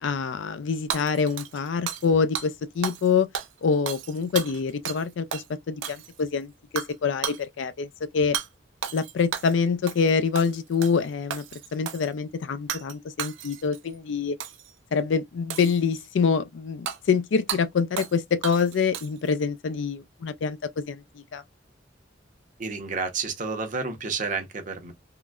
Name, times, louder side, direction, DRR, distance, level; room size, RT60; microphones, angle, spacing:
voice 1, 0.0-3.3 3.6-7.9 8.1-8.4 8.9-11.4 11.7-14.4 14.9-21.0 21.3-21.4, left 5 dB, 75° left, 0.4 m, -25 dB
Hammer / Shatter, 0.9-2.1 2.3-2.5 2.8-3.1 3.3-5.0 5.3-5.5 5.8-6.3 6.8-6.9 7.2-7.4 8.3-8.5 8.8-9.6 9.9-10.1 10.3-11.0 11.3-12.1 12.7-12.9 13.2-13.8 14.4-14.7 15.5-16.1 16.9-17.0 17.5-17.6 18.0-18.2 18.4-19.3, right 8 dB, 85° right, 0.5 m, -33 dB
voice 2, 22.6-24.9, right 4 dB, 45° right, 0.8 m, -30 dB
3.7 x 2.1 x 2.3 m
head